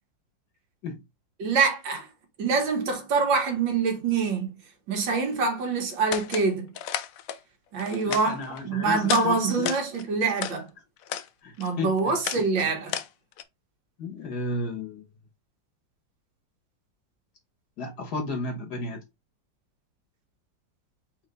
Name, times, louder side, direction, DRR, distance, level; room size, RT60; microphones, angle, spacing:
voice 1, 1.4-2.1 2.4-4.6 4.9-6.7 7.7-10.7 11.6-13.0, right 4 dB, 80° right, 1.9 m, -25 dB
sound 1, 6.1-6.5 6.7-7.4 7.8-8.6 9.0-9.3 9.5-10.6 11.0-11.3 11.6-13.4, left 10 dB, 85° left, 0.7 m, -33 dB
voice 2, 8.0-9.7 11.4-12.7 14.0-15.0 17.8-19.0, left 2 dB, 65° left, 1.4 m, -34 dB
4.4 x 2.8 x 3.9 m
omnidirectional pair, 2.0 m